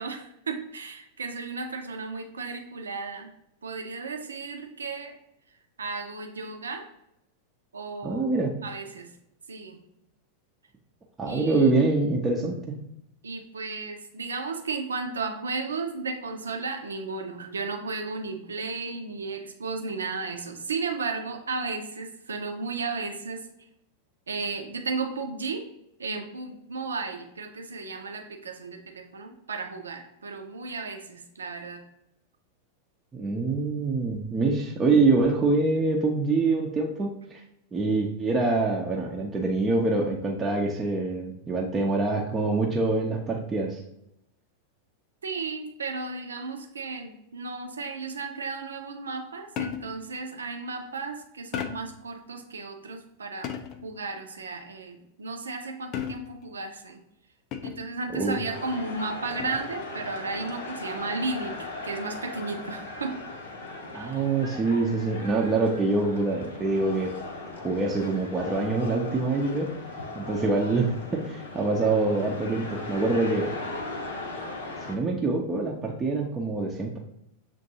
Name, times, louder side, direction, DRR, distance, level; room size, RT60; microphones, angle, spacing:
voice 1, 0.0-3.3 3.6-5.1 5.8-6.9 7.7-9.1 9.5-9.8 11.3-11.7 13.2-23.5 24.3-25.7 26.0-31.8 45.2-57.0 57.6-63.2 63.9-64.2, right 4 dB, 70° right, 4 dB, 0.6 m, -34 dB
voice 2, 8.0-8.5 11.2-12.8 33.1-37.4 37.7-43.8 58.1-58.4 63.9-67.1 67.6-69.7 70.2-73.5 74.9-77.0, right 3 dB, 15° right, -2 dB, 0.6 m, -25 dB
sound 1, 49.6-50.1 51.5-52.0 53.4-53.9 55.9-56.5 57.5-58.0 59.4-59.8, left 9 dB, 35° left, 0.4 m, -35 dB
sound 2, 58.5-75.0, left 2 dB, 65° left, 0.7 m, -38 dB
6.8 x 2.6 x 2.7 m, 0.80 s
figure-of-eight pair, 90°, 0 cm